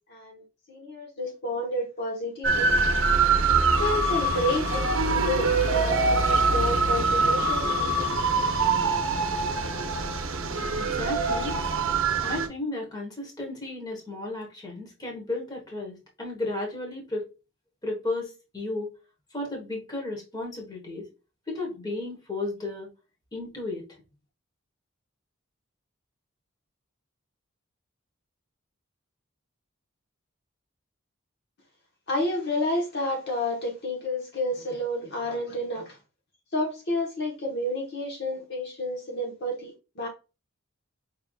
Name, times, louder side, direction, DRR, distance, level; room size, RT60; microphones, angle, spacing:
voice 1, 0.1-2.7 3.6-8.1 32.1-36.0 36.5-40.1, left 1 dB, 55° left, 1.1 m, -30 dB
sound 1, 2.4-12.5, right 3 dB, 70° right, 0.7 m, -24 dB
voice 2, 10.8-11.6 12.2-17.3 17.8-18.9 19.3-21.1 21.5-22.9 23.3-23.8, left 2 dB, 20° left, 1.2 m, -33 dB
4.9 x 3.4 x 2.3 m
head